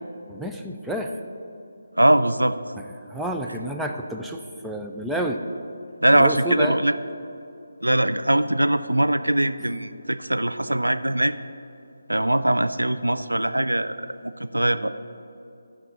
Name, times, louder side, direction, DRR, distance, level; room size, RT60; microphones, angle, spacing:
voice 1, 0.3-1.1 3.1-5.4 6.1-6.7, right 1 dB, ahead, 1 dB, 0.4 m, -29 dB
voice 2, 2.0-2.6 6.0-7.0 7.8-11.4 12.1-14.9, right 1 dB, 80° right, 11 dB, 0.4 m, -21 dB
13.0 x 5.2 x 3.8 m, 2.6 s
figure-of-eight pair, 150°, 0 cm